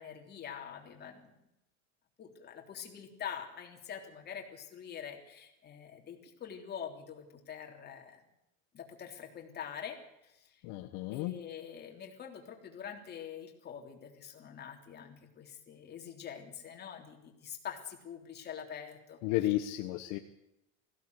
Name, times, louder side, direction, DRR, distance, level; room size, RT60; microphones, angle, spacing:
voice 1, 0.0-1.3 2.2-8.2 8.7-10.0 10.2-10.6 11.1-19.2, left 8 dB, 25° left, 2 dB, 3.3 m, -45 dB
voice 2, 10.6-11.4 19.2-20.2, left 15 dB, 55° left, 6 dB, 1.3 m, -33 dB
21.0 x 16.0 x 8.2 m, 0.87 s
cardioid pair, 160°, 37 cm